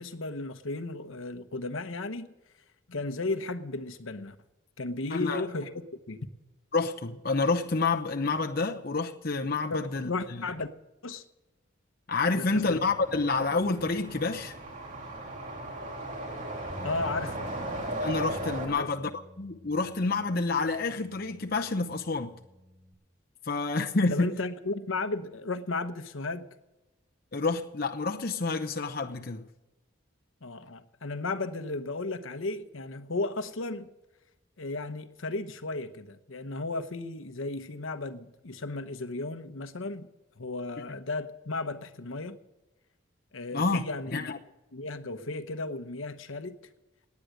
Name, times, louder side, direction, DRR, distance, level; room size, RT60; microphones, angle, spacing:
voice 1, 0.0-2.3 2.9-4.4 4.8-5.7 6.1-6.2 9.7-10.7 11.0-11.2 12.3-12.8 16.8-17.3 18.7-18.9 24.1-26.5 30.4-33.9 34.6-40.1 40.4-42.4 43.3-44.3 44.7-46.6, left 3 dB, 75° left, 1.0 m, -34 dB
voice 2, 5.1-5.4 6.7-10.4 12.1-14.5 18.0-19.1 19.4-22.4 23.5-24.3 27.3-29.4 43.5-43.8 44.1-44.4, left 3 dB, 45° left, 0.8 m, -28 dB
sound 1, 12.5-18.7, right 1 dB, 35° right, 2.8 m, -37 dB
sound 2, 16.7-22.9, left 1 dB, 5° left, 3.2 m, -50 dB
18.5 x 9.6 x 6.5 m
head